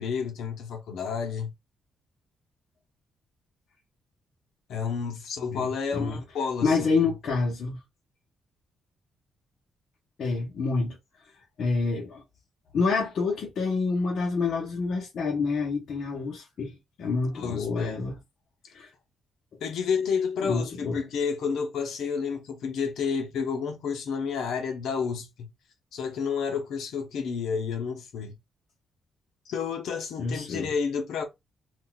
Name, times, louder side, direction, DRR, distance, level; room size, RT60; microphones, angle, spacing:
voice 1, 0.0-1.5 4.7-7.1 17.3-18.0 19.6-25.5 25.9-28.3 29.5-31.2, left 6 dB, 80° left, 0.9 m, -30 dB
voice 2, 5.5-6.2 6.6-7.8 10.2-11.0 11.6-12.2 12.7-18.2 18.7-18.9 20.4-21.0 30.2-30.7, left 4 dB, 55° left, 1.0 m, -28 dB
3.9 x 2.4 x 2.3 m
cardioid pair, 155°, 0 cm